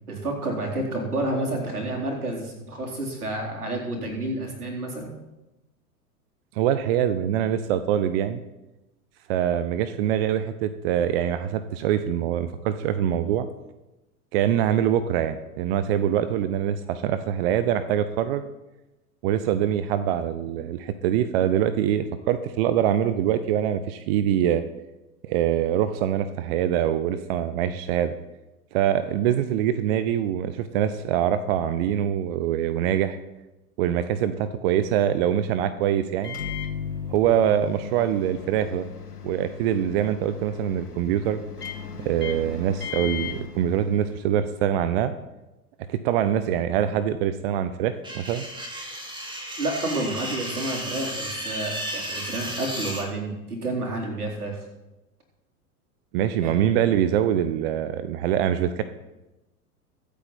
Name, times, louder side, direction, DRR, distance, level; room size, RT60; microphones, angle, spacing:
voice 1, 0.1-5.1 49.6-54.6 56.4-56.5, right 1 dB, 75° right, -1 dB, 4.1 m, -30 dB
voice 2, 6.5-8.4 9.3-13.5 14.3-18.4 19.2-24.6 25.2-28.1 28.7-33.2 33.8-36.4 37.1-38.9 39.2-41.4 42.0-45.1 45.9-48.5 56.1-58.8, right 10 dB, 40° right, 12 dB, 0.8 m, -24 dB
Microwave oven, 36.2-44.4, left 7 dB, 80° left, 1.4 m, -37 dB
sound 1, 48.0-53.0, right 1 dB, 10° right, 2.4 m, -33 dB
24.0 x 8.4 x 4.3 m, 1.0 s
figure-of-eight pair, 90°, 45 cm